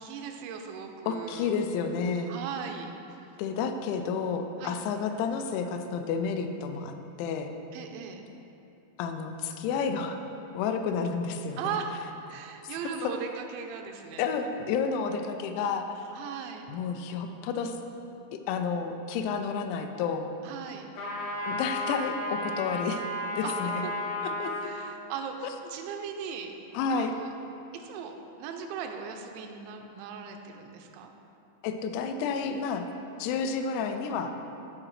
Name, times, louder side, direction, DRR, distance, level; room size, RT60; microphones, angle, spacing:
voice 1, 0.0-1.6 2.3-2.9 4.6-4.8 7.7-8.2 11.6-12.0 12.3-14.3 16.1-16.7 20.4-20.9 23.4-23.9 24.6-26.5 26.9-27.3 27.7-31.1, right 6 dB, 85° right, 4 dB, 2.9 m, -38 dB
voice 2, 1.1-2.3 3.4-7.5 9.0-10.2 10.5-11.6 12.6-12.7 13.0-13.1 14.2-16.1 16.7-17.8 18.5-20.3 21.5-23.0 23.3-23.8 24.2-24.5 26.7-27.1 31.6-32.8 33.2-34.3, left 5 dB, 85° left, 6 dB, 2.8 m, -30 dB
sound 1, 20.9-24.8, left 1 dB, 65° left, 1.8 m, -33 dB
14.0 x 4.8 x 3.2 m, 2.8 s
omnidirectional pair, 5.1 m